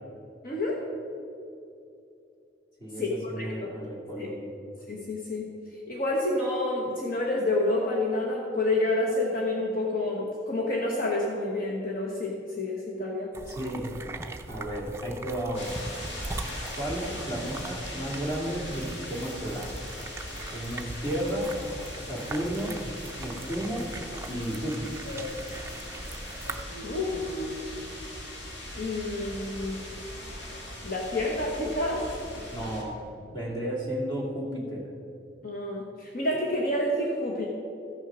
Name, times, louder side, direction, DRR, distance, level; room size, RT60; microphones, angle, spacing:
voice 1, 0.4-0.8 3.0-3.7 4.2-4.3 4.9-5.5 5.9-13.3 26.8-27.1 28.7-29.8 30.8-32.1 35.4-37.5, left 2 dB, 50° left, -2 dB, 1.2 m, -29 dB
voice 2, 2.8-4.5 13.5-13.9 14.5-15.8 16.7-19.7 20.5-21.5 22.0-22.8 23.2-23.9 24.3-25.0 32.5-33.0 33.3-34.9, equal, 25° left, -3 dB, 2.3 m, -33 dB
sound 1, 13.3-26.6, right 2 dB, 15° right, 0.5 m, -41 dB
sound 2, 15.5-32.8, left 1 dB, 85° left, 2.5 m, -39 dB
14.0 x 6.4 x 6.2 m, 2.7 s
head